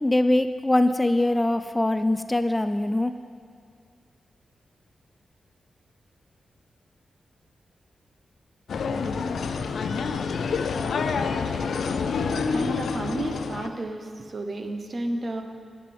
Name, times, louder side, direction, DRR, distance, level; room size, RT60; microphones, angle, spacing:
voice 1, 0.0-3.1, left 1 dB, 15° left, 10 dB, 0.3 m, -22 dB
sound 1, 8.7-13.7, left 5 dB, 80° left, 0.4 m, -27 dB
voice 2, 12.5-15.4, right 2 dB, 45° right, 5 dB, 0.8 m, -32 dB
9.8 x 9.4 x 3.4 m, 2.2 s
cardioid pair, 60°, 0 cm